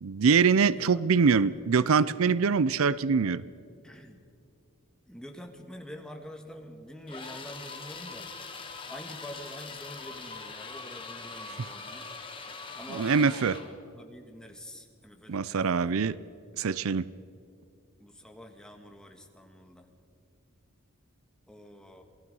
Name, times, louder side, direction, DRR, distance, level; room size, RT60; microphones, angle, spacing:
voice 1, 0.0-3.4 12.9-13.6 15.3-16.2 16.6-17.0, right 5 dB, 75° right, 19 dB, 0.5 m, -24 dB
voice 2, 3.8-4.2 5.1-8.3 8.9-12.1 12.7-16.0 18.0-19.9 21.5-22.0, equal, 5° left, 4 dB, 1.6 m, -46 dB
sound 1, 7.1-13.8, left 4 dB, 25° left, 1.8 m, -42 dB
27.5 x 18.5 x 5.4 m, 2.5 s
head